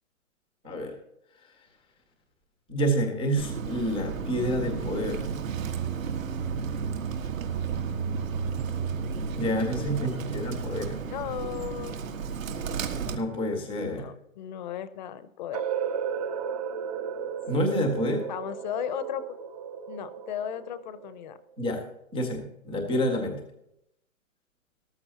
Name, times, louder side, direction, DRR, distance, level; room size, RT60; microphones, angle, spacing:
voice 1, 1.3-1.7 2.7-5.3 9.4-11.0 13.0-14.1 17.5-18.2 21.6-21.8 22.1-23.4, equal, 5° right, -7 dB, 0.4 m, -28 dB
Bird, 3.4-13.2, right 6 dB, 75° right, 1.8 m, -32 dB
voice 2, 9.4-10.2 11.1-12.0 13.8-15.6 17.5-17.7 18.3-19.4 19.9-21.4, left 10 dB, 35° left, 14 dB, 0.8 m, -36 dB
sound 1, 15.5-21.4, right 7 dB, 25° right, 0.7 m, -34 dB
14.0 x 13.0 x 2.9 m, 0.80 s
hypercardioid pair, 145°, 41 cm